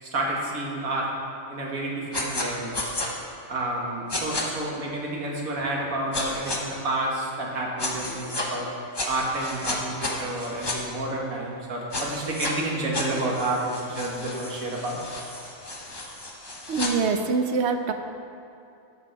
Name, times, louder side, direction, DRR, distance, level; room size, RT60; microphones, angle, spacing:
voice 1, 0.0-1.1 1.5-2.9 3.5-8.7 9.0-15.0, right 2 dB, 90° right, -2 dB, 2.0 m, -30 dB
sound 1, 2.1-2.5 2.7-3.1 4.1-4.4 6.1-6.6 7.8-8.5 8.9-10.8 11.9-12.5 12.9-16.9, left 2 dB, 20° left, 0.8 m, -32 dB
voice 2, 16.7-17.9, right 4 dB, 60° right, 6 dB, 0.9 m, -24 dB
12.0 x 6.7 x 4.6 m, 2.6 s
omnidirectional pair, 1.4 m